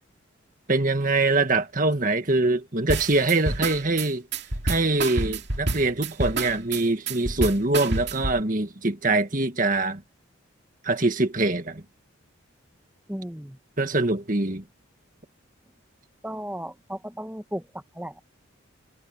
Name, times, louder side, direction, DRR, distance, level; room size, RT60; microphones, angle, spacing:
voice 1, 0.7-4.2 4.6-10.0 10.8-11.8 13.8-14.6, right 2 dB, 40° right, 1.8 m, -23 dB
sound 1, 2.9-8.4, right 2 dB, 55° right, 2.3 m, -28 dB
voice 2, 13.1-13.6 16.2-17.6 17.9-18.2, equal, 5° right, 1.6 m, -35 dB
head